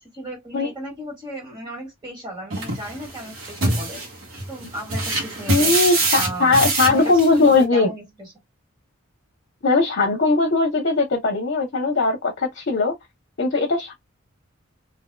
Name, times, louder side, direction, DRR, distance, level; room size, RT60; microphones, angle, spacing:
voice 1, 0.1-4.0 4.5-5.7 6.1-6.6 6.9-8.3, equal, 25° right, 1.9 m, -35 dB
sound 1, 2.5-7.6, right 2 dB, 80° right, 1.4 m, -25 dB
voice 2, 5.5-7.9 9.6-12.9 13.4-13.9, left 3 dB, 60° left, 0.8 m, -19 dB
3.5 x 2.7 x 2.2 m
head